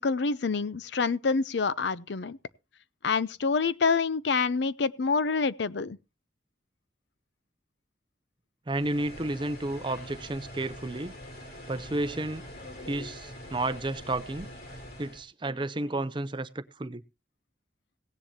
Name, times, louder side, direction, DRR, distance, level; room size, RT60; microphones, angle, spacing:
voice 1, 0.0-2.4 3.0-6.0, left 4 dB, 70° left, 0.6 m, -27 dB
sound 1, 8.7-15.2, left 1 dB, 55° left, 3.2 m, -44 dB
voice 2, 8.7-11.1 11.7-12.4 12.9-14.5 15.0-17.0, right 2 dB, 25° right, 0.6 m, -32 dB
17.5 x 10.5 x 2.8 m
head